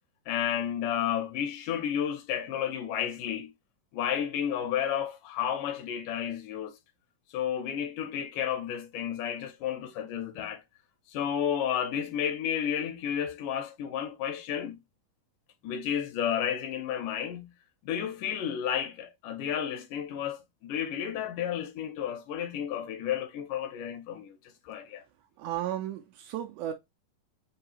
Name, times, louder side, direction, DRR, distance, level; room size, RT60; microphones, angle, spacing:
voice 1, 0.3-3.5 3.9-6.8 7.3-10.6 11.1-14.8 15.6-17.5 17.8-24.4 24.7-25.0, left 9 dB, 80° left, 2.2 m, -32 dB
voice 2, 25.4-26.7, right 12 dB, 80° right, 1.9 m, -34 dB
5.5 x 2.4 x 2.8 m
omnidirectional pair, 3.8 m